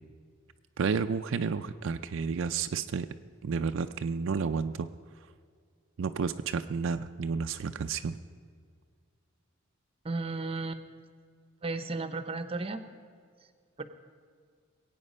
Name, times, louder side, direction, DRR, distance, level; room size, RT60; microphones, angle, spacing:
voice 1, 0.8-3.1 3.4-4.9 6.0-8.2, right 5 dB, 65° right, 8 dB, 0.4 m, -31 dB
voice 2, 10.0-10.8 11.6-12.8 13.8-13.9, right 3 dB, 25° right, 10 dB, 0.7 m, -34 dB
21.5 x 8.7 x 5.4 m, 2.1 s
head